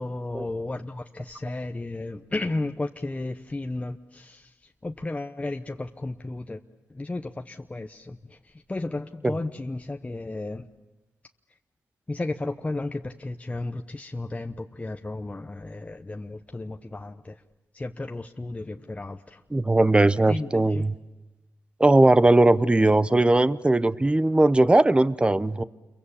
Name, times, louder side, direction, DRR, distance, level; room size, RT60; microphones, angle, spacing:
voice 1, 0.0-6.6 6.9-8.4 8.7-10.7 12.1-17.4 17.7-19.4 20.3-20.8, left 2 dB, 25° left, 5 dB, 0.9 m, -33 dB
voice 2, 19.5-20.9 21.8-25.6, right 2 dB, 15° right, 15 dB, 0.8 m, -19 dB
28.0 x 23.0 x 7.2 m, 1.1 s
cardioid pair, 65°, 6 cm